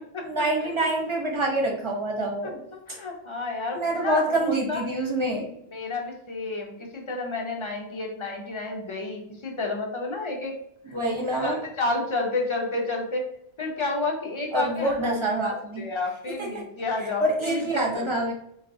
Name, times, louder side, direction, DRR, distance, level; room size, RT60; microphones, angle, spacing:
voice 1, 0.2-2.6 3.7-5.5 10.9-11.6 14.5-15.8 16.5-16.6 17.2-18.3, right 1 dB, 35° right, -2 dB, 0.7 m, -26 dB
voice 2, 2.4-4.8 5.7-10.5 10.9-13.3 13.6-15.2 15.4-18.1, left 3 dB, 35° left, 1 dB, 0.6 m, -31 dB
3.6 x 2.3 x 2.6 m, 0.73 s
omnidirectional pair, 1.1 m